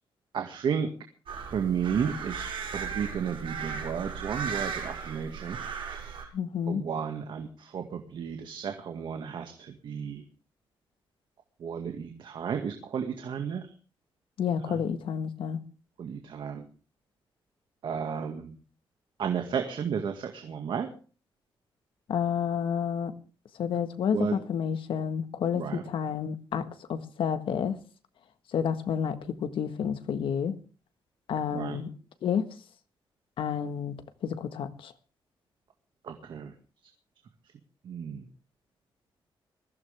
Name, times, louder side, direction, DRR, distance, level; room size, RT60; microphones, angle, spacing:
voice 1, 0.3-0.9 1.5-2.5 2.7-6.3 6.7-10.2 11.6-13.7 14.7-14.8 16.0-16.7 17.8-18.6 19.2-20.9 24.1-24.4 25.5-25.8 31.5-31.8 36.0-36.5 37.8-38.3, right 7 dB, 65° right, 5 dB, 2.0 m, -33 dB
sound 1, 1.3-6.2, right 6 dB, 90° right, 6.2 m, -36 dB
voice 2, 6.3-6.8 14.4-15.6 22.1-23.1 23.6-27.8 28.5-30.6 31.3-31.9 32.2-32.5 33.4-34.9, left 7 dB, 80° left, 10 dB, 1.5 m, -30 dB
21.5 x 15.5 x 3.5 m, 0.37 s
wide cardioid pair, 160°, 9 cm